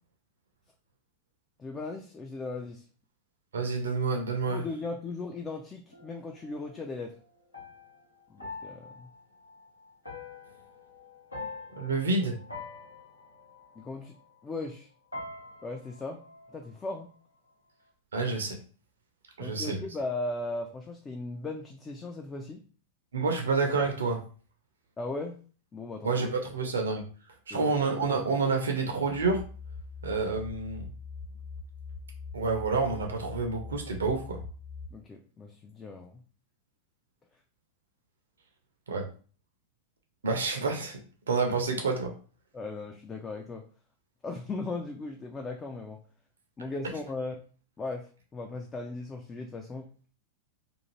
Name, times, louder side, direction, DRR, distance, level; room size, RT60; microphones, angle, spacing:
voice 1, 1.6-2.9 4.5-7.1 8.3-9.1 13.8-14.1 14.4-14.9 15.6-16.2 16.5-17.1 19.4-22.6 25.0-25.4 25.7-26.2 27.5-27.8 34.9-36.2 42.5-43.6 44.2-46.0 46.6-47.4 47.8-49.9, left 3 dB, 20° left, 2 dB, 0.4 m, -37 dB
voice 2, 3.5-4.6 11.8-12.4 18.1-18.6 19.4-19.8 23.1-24.2 26.0-27.0 27.5-29.4 30.0-30.9 32.3-34.4 38.9-39.0 40.2-41.0 41.3-42.1, right 4 dB, 70° right, 2 dB, 0.6 m, -28 dB
sound 1, 5.9-14.8 15.1-17.2, left 3 dB, 85° left, 1.0 m, -45 dB
sound 2, 29.1-34.9, left 4 dB, 60° left, 0.6 m, -42 dB
2.6 x 2.4 x 3.0 m, 0.40 s
figure-of-eight pair, 90°, 0 cm